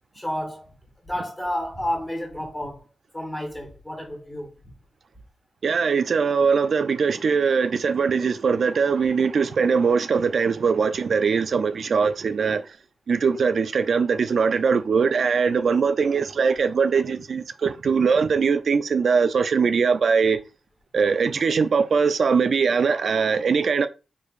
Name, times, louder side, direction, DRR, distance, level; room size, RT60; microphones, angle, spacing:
voice 1, 0.1-0.7 1.1-2.8 3.1-4.5, left 1 dB, 10° left, 1.6 m, -30 dB
voice 2, 5.6-12.6 13.1-20.4 20.9-23.9, right 5 dB, 60° right, 0.3 m, -21 dB
4.5 x 3.1 x 2.4 m
cardioid pair, 95°, 0 cm